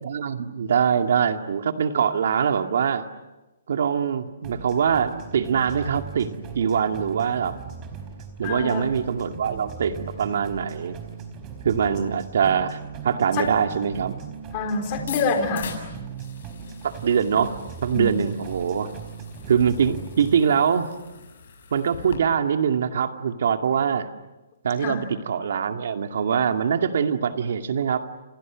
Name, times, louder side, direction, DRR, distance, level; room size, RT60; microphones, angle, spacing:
voice 1, 0.0-3.1 3.7-7.5 8.4-11.0 11.6-12.8 13.0-14.2 16.8-17.5 17.8-18.9 19.5-20.9 21.7-24.1 24.6-28.1, right 7 dB, 70° right, 6 dB, 2.3 m, -23 dB
sound 1, 4.4-20.4, right 6 dB, 25° right, 4.5 m, -39 dB
voice 2, 8.4-8.9 13.4-13.5 14.5-15.7 17.9-18.2 24.8-25.1, left 4 dB, 35° left, 4 dB, 4.1 m, -26 dB
sound 2, 14.9-22.2, left 7 dB, 60° left, 7.2 m, -42 dB
29.0 x 28.5 x 6.4 m, 1.1 s
hypercardioid pair, 155°, 0 cm